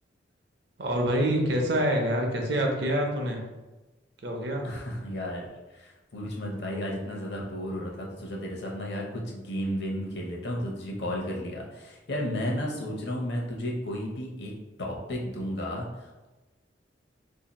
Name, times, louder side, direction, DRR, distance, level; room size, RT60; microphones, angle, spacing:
voice 1, 0.8-3.4 4.2-4.6, equal, 60° right, 1 dB, 0.6 m, -26 dB
voice 2, 4.6-14.5 14.8-16.3, equal, 60° left, -1 dB, 0.7 m, -33 dB
2.7 x 2.5 x 4.0 m, 1.1 s
head